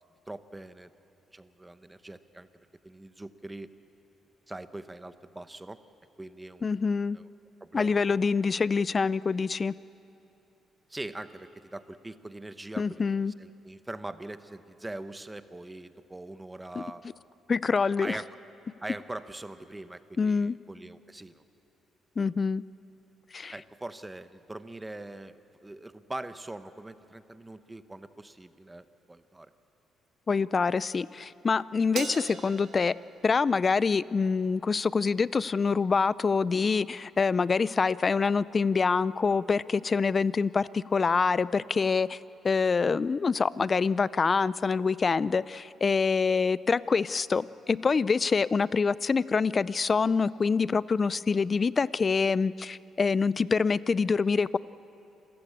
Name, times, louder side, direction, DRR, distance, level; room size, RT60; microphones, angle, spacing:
voice 1, 0.3-0.9 1.3-2.5 2.8-3.7 4.5-5.8 6.2-6.7 7.1-7.3 7.6-8.0 10.9-17.0 18.0-18.3 18.8-21.4 22.2-22.3 23.5-29.5, right 2 dB, 15° right, 12 dB, 0.9 m, -42 dB
voice 2, 6.6-7.2 7.7-9.7 12.8-13.3 16.8-16.9 17.5-18.2 20.2-20.6 22.2-22.6 23.3-23.5 30.3-32.9 33.2-42.2 42.4-54.6, left 5 dB, 35° left, 19 dB, 0.4 m, -26 dB
Crash cymbal, 32.0-34.5, right 7 dB, 65° right, 1.6 m, -41 dB
27.0 x 15.0 x 8.6 m, 2.8 s
cardioid pair, 90°, 0 cm